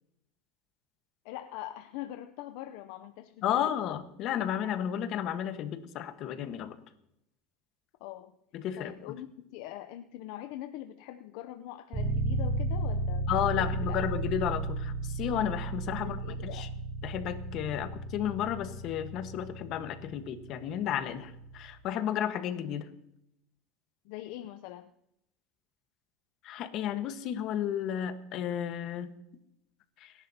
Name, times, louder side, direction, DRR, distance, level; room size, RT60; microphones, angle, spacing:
voice 1, 1.2-3.7 8.0-8.4 8.8-13.3 13.6-14.0 16.0-16.7 24.0-24.9, left 13 dB, 70° left, 9 dB, 0.6 m, -43 dB
voice 2, 3.4-6.8 8.5-9.1 13.3-16.7 17.0-22.9 26.4-29.1 30.0-30.1, left 10 dB, 50° left, 9 dB, 1.3 m, -33 dB
sound 1, 11.9-21.7, right 2 dB, 30° right, 3.1 m, -34 dB
30.0 x 11.0 x 2.8 m, 0.82 s
supercardioid pair, 125°, 0 cm